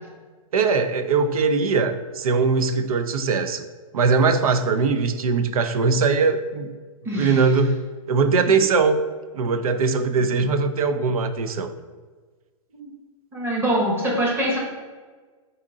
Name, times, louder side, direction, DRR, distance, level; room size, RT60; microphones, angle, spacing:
voice 1, 0.5-3.6 3.9-6.7 7.2-9.0 9.3-11.7, right 4 dB, 85° right, 10 dB, 0.4 m, -21 dB
voice 2, 7.0-7.4 12.7-12.9 13.3-14.6, right 1 dB, 15° right, -2 dB, 0.9 m, -24 dB
3.7 x 2.7 x 3.7 m, 1.4 s
hypercardioid pair, 130°, 18 cm